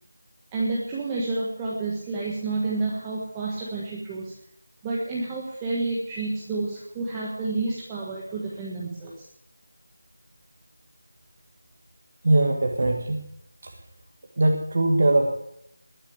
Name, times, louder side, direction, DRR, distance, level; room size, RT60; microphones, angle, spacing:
voice 1, 0.5-4.3 4.8-9.3, right 3 dB, 10° right, -4 dB, 1.3 m, -29 dB
voice 2, 12.2-13.2 14.4-15.3, right 2 dB, 35° right, 2 dB, 1.8 m, -21 dB
20.0 x 6.8 x 8.7 m, 0.77 s
figure-of-eight pair, 175°, 0 cm